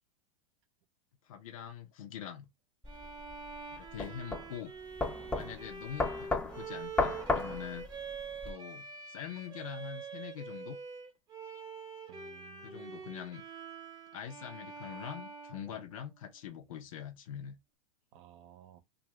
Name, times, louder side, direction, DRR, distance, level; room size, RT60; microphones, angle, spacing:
voice 1, 1.2-2.5 3.7-4.8 5.3-7.8 8.4-10.8 12.6-13.4 14.1-17.6, left 9 dB, 80° left, 0.7 m, -44 dB
sound 1, 2.8-8.5, left 3 dB, 5° left, 0.5 m, -35 dB
Bowed string instrument, 2.9-16.3, right 5 dB, 25° right, 0.8 m, -45 dB
voice 2, 5.2-5.5 12.1-13.0 15.7-15.8 18.1-18.8, right 11 dB, 65° right, 0.7 m, -56 dB
2.6 x 2.5 x 3.0 m
supercardioid pair, 140°, 17 cm